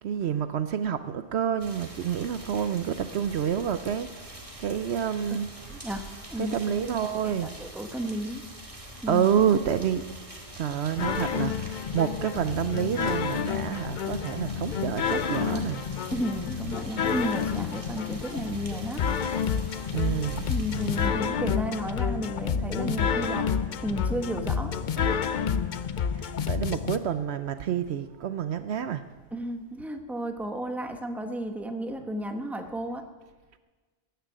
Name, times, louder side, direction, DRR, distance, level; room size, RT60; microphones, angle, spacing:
voice 1, 0.0-5.5 6.4-7.5 9.1-10.1 10.6-15.8 19.9-20.5 25.0-25.1 26.1-29.1, right 8 dB, 65° right, 12 dB, 0.9 m, -28 dB
sound 1, 1.6-21.1, right 1 dB, 25° right, 2.0 m, -45 dB
voice 2, 5.7-6.0 6.3-6.6 6.8-7.0 7.2-8.4 9.0-9.3 16.1-19.1 20.5-23.6 23.8-24.7 29.3-33.1, equal, ahead, 6 dB, 1.0 m, -33 dB
sound 2, 11.0-27.0, left 7 dB, 50° left, 0.7 m, -29 dB
13.5 x 10.0 x 9.0 m, 1.4 s
omnidirectional pair, 1.2 m